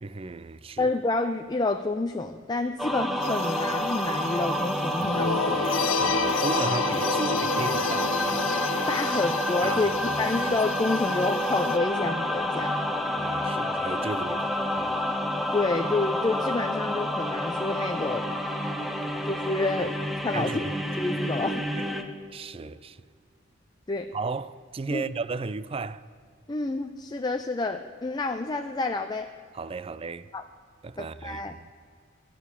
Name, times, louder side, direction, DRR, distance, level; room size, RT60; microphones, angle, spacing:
voice 1, 0.0-0.9 6.0-8.5 9.6-10.0 10.3-10.5 13.2-15.0 20.3-20.7 21.8-21.9 22.3-23.0 24.1-26.0 29.5-30.3 30.8-31.7, right 3 dB, 30° right, 0.4 m, -35 dB
voice 2, 0.8-5.6 8.9-12.8 15.5-18.4 19.2-19.9 20.2-20.6 21.0-21.7 23.9-24.1 24.9-25.0 26.5-29.3 30.3-30.5 31.0-31.5, left 2 dB, 20° left, 0.5 m, -28 dB
sound 1, 2.8-22.0, left 1 dB, ahead, 0.9 m, -29 dB
sound 2, 3.2-11.8, left 5 dB, 85° left, 0.6 m, -31 dB
13.5 x 9.2 x 8.2 m
head